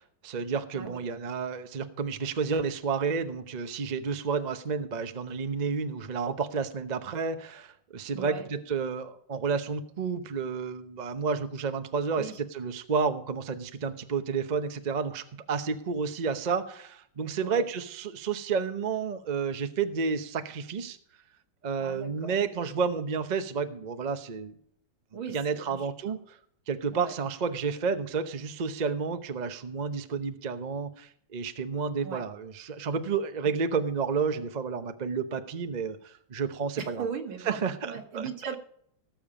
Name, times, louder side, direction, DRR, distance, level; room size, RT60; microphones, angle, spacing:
voice 1, 0.0-21.0 21.6-24.5 25.3-26.4 26.7-37.0 37.5-38.3, right 5 dB, 45° right, 8 dB, 0.5 m, -31 dB
voice 2, 8.1-8.5 12.2-12.4 17.4-17.6 21.8-22.4 25.1-26.2 26.9-27.1 32.0-32.2 36.8-38.6, right 6 dB, 85° right, 4 dB, 2.5 m, -38 dB
17.5 x 7.4 x 5.0 m, 0.66 s
omnidirectional pair, 2.2 m